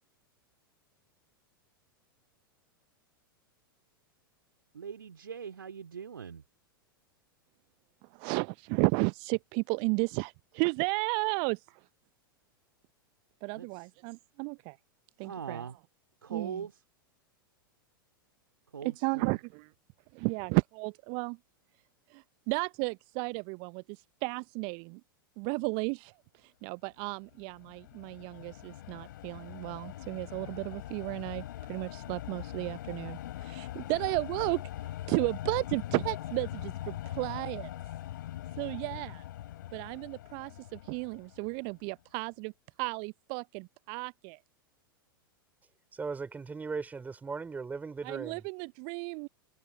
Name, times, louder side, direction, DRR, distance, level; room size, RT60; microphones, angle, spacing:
voice 1, 4.7-6.4 13.5-13.9 15.2-15.8 16.2-16.8 18.7-19.4, right 7 dB, 75° right, 3.2 m, -41 dB
voice 2, 8.1-11.8 13.4-14.8 15.2-15.6 16.3-16.6 19.0-19.7 20.1-21.4 22.1-23.8 24.2-25.0 25.4-26.1 26.6-31.4 31.7-34.6 35.1-37.7 38.6-39.2 39.7-42.5 42.8-44.4 48.0-49.3, right 37 dB, 40° right, 0.6 m, -33 dB
sound 1, 27.3-41.8, left 13 dB, 60° left, 3.6 m, -42 dB
voice 3, 45.9-48.4, right 4 dB, 15° right, 4.9 m, -38 dB
figure-of-eight pair, 95°, 12 cm